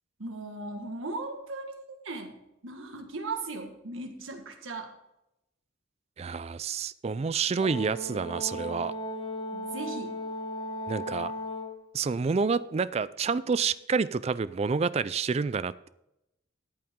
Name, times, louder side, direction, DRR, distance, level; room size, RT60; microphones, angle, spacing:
voice 1, 0.2-4.9 9.5-10.2, right 3 dB, 90° right, 5 dB, 1.7 m, -38 dB
voice 2, 6.2-8.9 10.9-11.3 11.9-15.9, right 5 dB, 30° right, 16 dB, 0.3 m, -28 dB
Brass instrument, 7.6-11.8, equal, 25° left, 1.0 m, -36 dB
14.0 x 8.7 x 3.7 m, 0.87 s
head